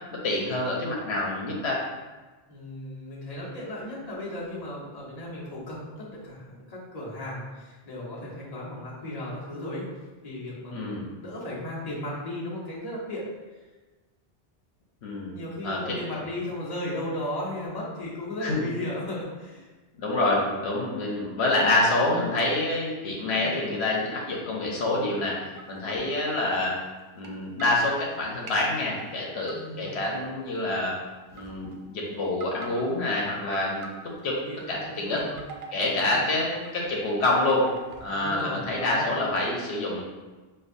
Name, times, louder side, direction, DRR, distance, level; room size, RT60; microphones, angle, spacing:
voice 1, 0.1-1.8 10.7-11.1 15.0-15.3 15.6-16.2 18.4-18.7 20.0-25.3 25.7-26.8 27.2-31.0 31.3-33.8 34.2-34.4 34.7-35.2 35.7-37.7 38.0-40.0, left 2 dB, 80° left, -3 dB, 1.0 m, -27 dB
voice 2, 2.5-9.9 10.2-13.3 15.3-19.7 29.5-29.9 34.2-35.5 35.9-36.4 38.1-39.1, left 1 dB, 40° left, -6 dB, 1.1 m, -36 dB
sound 1, 25.6-26.4 27.2-27.3 27.6-28.0 28.5-29.6 29.8-30.6 31.3-31.8 32.3-33.0 33.5-34.4 35.0-35.9 36.4-36.7 37.0-38.9, right 4 dB, 60° right, 0.6 m, -44 dB
6.5 x 2.3 x 2.5 m, 1.2 s
omnidirectional pair, 1.1 m